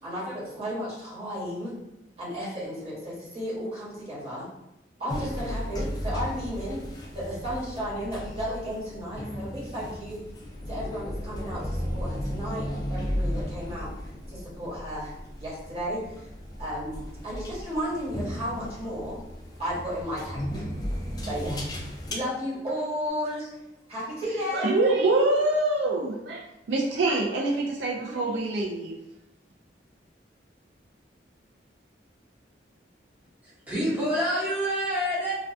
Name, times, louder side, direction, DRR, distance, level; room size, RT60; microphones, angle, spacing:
voice 1, 0.0-1.7 2.2-4.5 5.0-6.8 7.1-10.2 10.7-13.9 14.3-15.1 15.4-16.3 16.6-19.2 19.6-20.6 21.2-21.6 22.1-23.6 23.9-24.8, equal, 35° right, -8 dB, 1.0 m, -33 dB
sound 1, 5.1-22.1, equal, 20° left, 0.3 m, -35 dB
voice 2, 24.5-29.0, right 2 dB, 75° right, -2 dB, 0.3 m, -25 dB
voice 3, 33.4-35.3, equal, 10° right, -9 dB, 0.7 m, -27 dB
2.3 x 2.2 x 2.5 m, 0.89 s
head